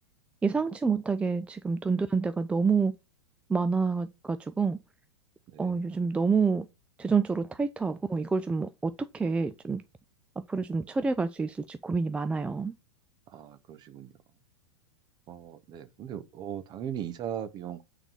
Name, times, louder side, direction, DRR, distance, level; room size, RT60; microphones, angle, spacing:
voice 1, 0.4-2.9 3.5-4.8 5.6-6.7 7.0-9.8 10.5-12.7, right 4 dB, 10° right, 0.4 m, -28 dB
voice 2, 13.3-14.1 15.3-17.8, right 10 dB, 30° right, 1.1 m, -38 dB
8.9 x 4.0 x 4.9 m
figure-of-eight pair, 95°, 14 cm